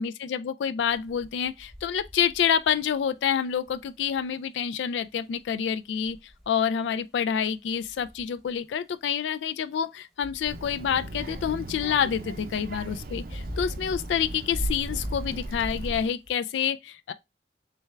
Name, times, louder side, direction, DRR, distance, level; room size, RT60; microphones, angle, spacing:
voice 1, 0.0-6.2 6.5-17.1, left 8 dB, 85° left, 0.3 m, -28 dB
sound 1, 0.8-3.1 3.5-4.3 5.4-5.5 6.0-6.6 7.8-8.6 10.2-16.3, equal, ahead, 0.8 m, -42 dB
Child speech kid speaking, 10.5-16.1, right 2 dB, 55° right, 0.5 m, -37 dB
3.4 x 3.3 x 3.2 m
head